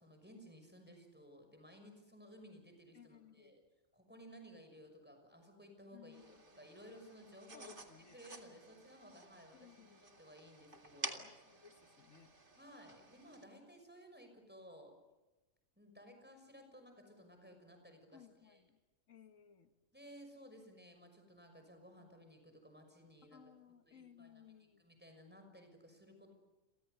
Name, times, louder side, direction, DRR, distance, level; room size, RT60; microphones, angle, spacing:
voice 1, 0.0-3.6 3.9-7.8 8.1-11.2 12.6-14.9 15.8-18.6 19.9-23.4 23.9-24.5 24.8-26.3, equal, 10° right, 5 dB, 6.0 m, -57 dB
voice 2, 2.9-3.6 5.9-6.7 7.5-8.2 9.5-10.1 11.2-12.3 18.1-18.8 19.1-19.7 23.3-24.9, left 8 dB, 80° left, 8 dB, 1.6 m, -61 dB
sound 1, 6.1-13.4, right 3 dB, 40° right, 2.3 m, -51 dB
30.0 x 24.0 x 6.8 m, 1.1 s
omnidirectional pair, 1.3 m